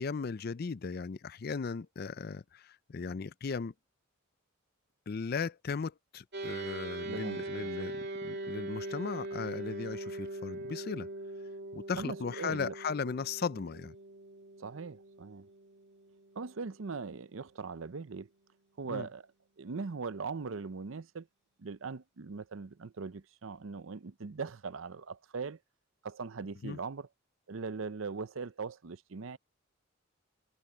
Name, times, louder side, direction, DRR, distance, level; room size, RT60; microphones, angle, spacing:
voice 1, 0.0-3.7 5.1-11.1 11.7-14.0 18.9-19.1 26.6-26.8, left 5 dB, 45° left, 0.4 m, -37 dB
sound 1, 6.3-17.9, right 2 dB, 50° right, 2.7 m, -42 dB
voice 2, 7.1-7.9 12.0-12.7 14.6-15.5 16.4-18.3 18.8-19.2 19.6-21.3 21.6-25.6 26.0-27.1 27.5-29.4, right 4 dB, 70° right, 0.6 m, -40 dB
head